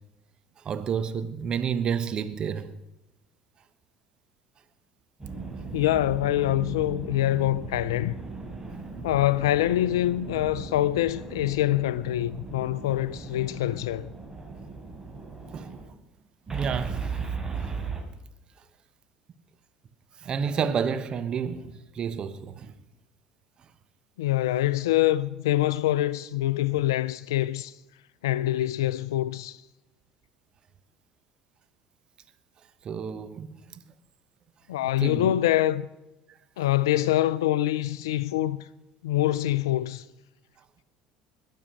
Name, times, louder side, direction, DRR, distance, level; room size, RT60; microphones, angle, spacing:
voice 1, 0.6-2.7 15.5-15.7 16.5-17.0 17.3-17.4 20.2-22.7 32.8-33.5 35.0-35.3, right 7 dB, 45° right, 1.1 m, -30 dB
sound 1, 5.2-15.8 16.5-18.0, right 4 dB, 20° right, 3.7 m, -37 dB
voice 2, 5.7-8.2 9.0-14.1 24.2-27.7 28.2-29.6 34.7-35.9 36.6-38.7 39.0-40.0, left 14 dB, 90° left, 0.4 m, -25 dB
21.0 x 7.4 x 6.4 m
hypercardioid pair, 75°, 2 cm